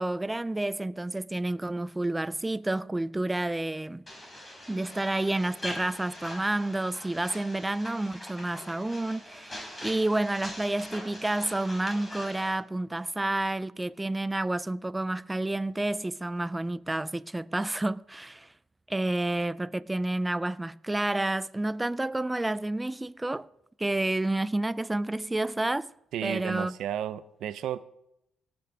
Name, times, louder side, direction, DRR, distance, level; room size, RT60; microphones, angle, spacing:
voice 1, 0.0-4.0 4.7-18.5 18.9-23.5 23.8-25.9 26.2-26.7, right 2 dB, 15° right, 0.4 m, -30 dB
sound 1, 4.1-12.5, left 1 dB, 20° left, 3.9 m, -42 dB
voice 2, 26.1-27.9, right 10 dB, 80° right, 0.5 m, -33 dB
17.5 x 5.9 x 4.9 m
cardioid pair, 90°, 0 cm